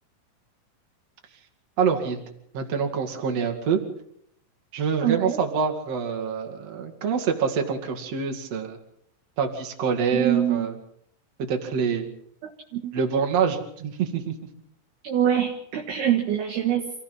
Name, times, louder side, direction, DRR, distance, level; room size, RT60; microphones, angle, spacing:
voice 1, 1.8-2.2 2.5-3.8 4.7-8.8 9.4-10.7 11.4-12.1 12.9-14.4, right 6 dB, 45° right, 3 dB, 2.5 m, -26 dB
voice 2, 5.0-5.4 10.1-10.7 12.4-12.9 15.0-16.9, right 10 dB, 65° right, 0 dB, 3.0 m, -24 dB
27.5 x 17.0 x 5.6 m, 0.71 s
omnidirectional pair, 5.9 m